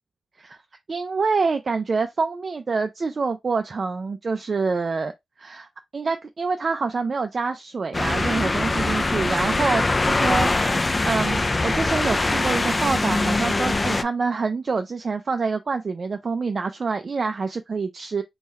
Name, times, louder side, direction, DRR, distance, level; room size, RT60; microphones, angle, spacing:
voice 1, 0.9-5.1 5.4-18.2, right 4 dB, 45° right, 0.4 m, -26 dB
sound 1, 7.9-14.0, left 2 dB, 25° left, 0.4 m, -22 dB
3.7 x 2.3 x 4.1 m
wide cardioid pair, 105°, 0 cm